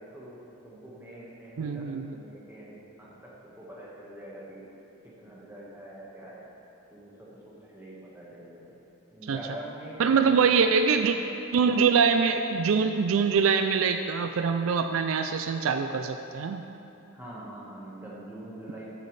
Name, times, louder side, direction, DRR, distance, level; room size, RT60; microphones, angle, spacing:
voice 1, 0.0-4.6 5.2-6.5 6.9-8.7 9.1-10.5 17.1-18.9, right 1 dB, 10° right, -6 dB, 1.5 m, -44 dB
voice 2, 1.6-2.2 9.3-9.4 10.0-11.2 11.5-16.6, right 5 dB, 70° right, 7 dB, 0.4 m, -24 dB
14.5 x 6.8 x 3.3 m, 2.8 s
head